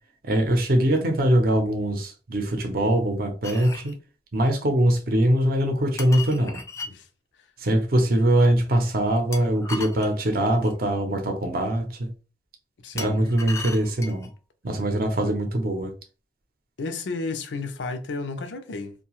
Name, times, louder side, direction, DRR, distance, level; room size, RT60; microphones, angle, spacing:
voice 1, 0.2-4.0 4.3-6.6 7.6-12.1 12.9-14.3 14.6-15.9, right 1 dB, 55° right, 0.6 m, -22 dB
sound 1, 3.4-3.9 6.0-6.9 9.3-10.8 13.0-14.3, left 4 dB, 15° left, 0.3 m, -37 dB
voice 2, 12.8-13.2 16.8-18.9, left 3 dB, 85° left, 0.5 m, -32 dB
2.7 x 2.2 x 2.9 m
head